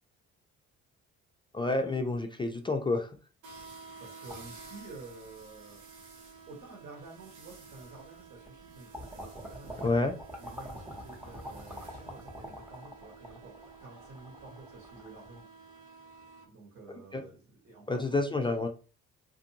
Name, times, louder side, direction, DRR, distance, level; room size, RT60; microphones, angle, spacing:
voice 1, 1.5-3.1 9.8-10.1 17.1-17.2 17.9-18.7, left 2 dB, 15° left, 4 dB, 0.3 m, -29 dB
sound 1, 3.4-16.4, right 4 dB, 80° right, 0.8 m, -52 dB
voice 2, 4.0-5.8 6.5-9.8 10.4-15.5 16.4-18.5, right 3 dB, 50° right, -5 dB, 1.3 m, -50 dB
sound 2, 4.3-5.4 6.2-6.3 7.5-7.6 8.0-8.6 8.9-15.4, equal, 5° right, 0.8 m, -45 dB
2.5 x 2.5 x 2.8 m, 0.37 s
cardioid pair, 90°, 30 cm